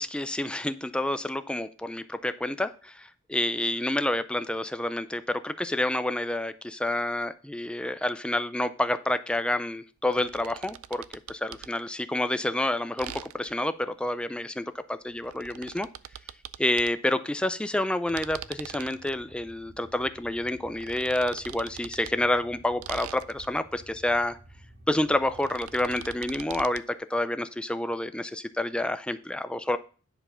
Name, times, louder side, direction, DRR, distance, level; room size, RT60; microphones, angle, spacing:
voice 1, 0.0-11.0 11.3-15.9 16.6-24.4 24.9-29.8, left 1 dB, 5° left, 11 dB, 0.4 m, -29 dB
sound 1, 10.1-11.7 13.0-13.6 15.1-17.0 18.1-19.2 20.6-22.1 22.8-23.7 25.1-26.9, right 11 dB, 90° right, 0.4 m, -43 dB
sound 2, 18.1-26.1, right 1 dB, 55° right, 1.9 m, -52 dB
10.0 x 4.5 x 5.5 m, 0.40 s
head